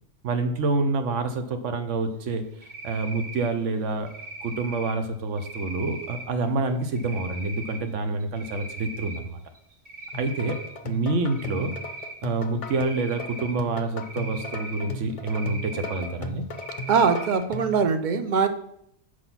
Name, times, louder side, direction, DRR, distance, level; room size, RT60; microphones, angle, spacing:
voice 1, 0.2-2.4 2.8-4.1 4.4-9.4 10.1-11.8 12.2-16.4, right 3 dB, 80° right, 8 dB, 1.1 m, -27 dB
Cricket, 2.6-3.5 4.1-4.9 5.4-6.2 7.0-7.8 8.2-9.2 9.6-10.7 11.3-12.1 12.7-13.5 14.0-14.8 15.3-16.1 16.5-17.4, right 2 dB, 30° right, 1.4 m, -39 dB
sound 1, 10.1-17.8, left 1 dB, 40° left, 0.5 m, -37 dB
voice 2, 16.9-18.5, right 5 dB, 50° right, 9 dB, 0.7 m, -22 dB
6.5 x 4.6 x 5.7 m, 0.72 s
omnidirectional pair, 1.2 m